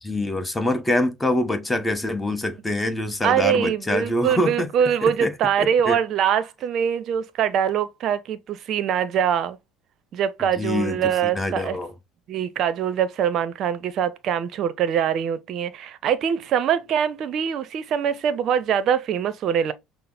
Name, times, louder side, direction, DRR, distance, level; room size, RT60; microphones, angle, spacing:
voice 1, 0.0-4.7 5.0-5.3 5.6-6.0 10.6-11.9, left 1 dB, 15° left, 1.0 m, -25 dB
voice 2, 3.2-9.6 10.1-11.8 12.3-19.7, right 8 dB, 55° right, 0.6 m, -23 dB
5.7 x 2.0 x 3.8 m
hypercardioid pair, 65°, 0 cm